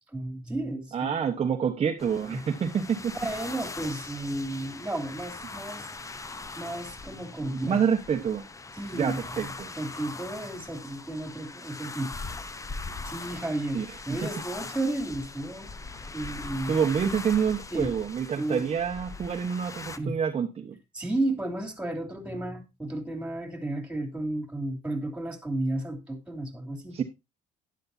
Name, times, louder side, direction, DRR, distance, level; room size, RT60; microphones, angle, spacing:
voice 1, 0.1-1.1 2.3-2.4 3.2-5.8 6.6-7.8 8.7-12.1 13.1-15.7 16.1-16.7 17.7-17.9 18.4-18.6 20.0-20.2 20.9-27.0, right 1 dB, 5° right, 6 dB, 3.1 m, -33 dB
voice 2, 0.9-3.1 7.5-8.4 8.9-9.7 13.7-13.9 14.2-14.3 16.7-20.8 26.9-27.0, right 7 dB, 35° right, 3 dB, 1.2 m, -27 dB
sound 1, 2.0-20.0, left 3 dB, 20° left, 0.8 m, -41 dB
12.5 x 10.5 x 2.7 m, 0.24 s
cardioid pair, 110°, 17 cm